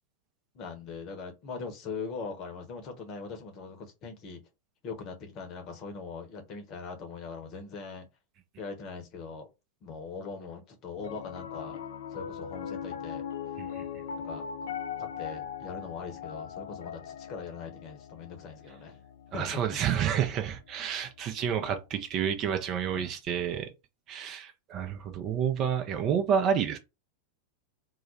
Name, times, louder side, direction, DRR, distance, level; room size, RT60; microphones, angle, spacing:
voice 1, 0.5-4.4 4.8-8.1 8.6-9.5 9.8-11.8 12.1-13.2 14.2-14.7 15.0-19.0 19.3-19.6 21.6-21.7 22.9-23.1, left 5 dB, 35° left, 0.8 m, -41 dB
Piano, 11.0-21.3, left 8 dB, 60° left, 0.4 m, -40 dB
voice 2, 19.3-23.7 24.1-26.8, right 8 dB, 35° right, 0.5 m, -29 dB
2.3 x 2.1 x 3.8 m
figure-of-eight pair, 90°, 0 cm